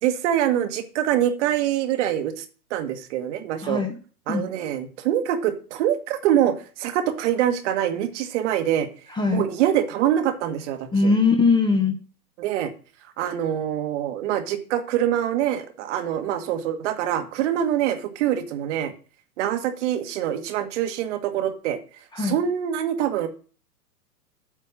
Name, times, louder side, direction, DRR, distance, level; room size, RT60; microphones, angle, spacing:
voice 1, 0.0-2.4 2.7-3.8 4.3-8.9 9.3-11.1 12.4-12.7 13.2-18.9 19.4-21.8 22.2-23.3, right 11 dB, 45° right, 7 dB, 1.5 m, -24 dB
voice 2, 3.6-3.9 4.3-4.4 9.2-9.5 10.9-12.0 22.1-22.4, left 4 dB, 10° left, 4 dB, 1.1 m, -20 dB
8.5 x 4.5 x 7.2 m, 0.37 s
hypercardioid pair, 115°, 48 cm